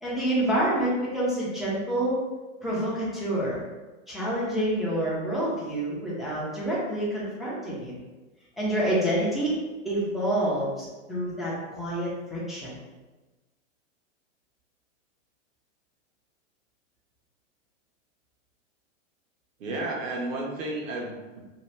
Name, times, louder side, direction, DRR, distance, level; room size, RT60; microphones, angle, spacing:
voice 1, 0.0-2.2 2.6-3.6 4.1-8.0 8.6-9.5 9.8-12.7, right 1 dB, ahead, -9 dB, 0.5 m, -27 dB
voice 2, 19.6-21.4, right 2 dB, 80° right, -1 dB, 1.0 m, -32 dB
2.8 x 2.2 x 3.1 m, 1.2 s
hypercardioid pair, 140°, 39 cm